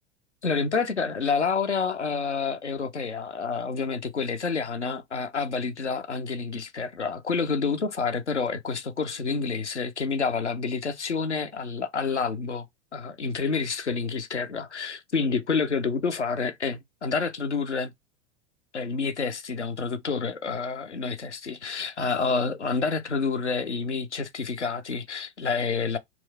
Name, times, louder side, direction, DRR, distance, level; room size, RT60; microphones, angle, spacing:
voice 1, 0.4-12.7 12.9-17.9 18.7-26.0, left 5 dB, 85° left, 0.8 m, -28 dB
4.4 x 2.3 x 4.0 m
figure-of-eight pair, 90°, 34 cm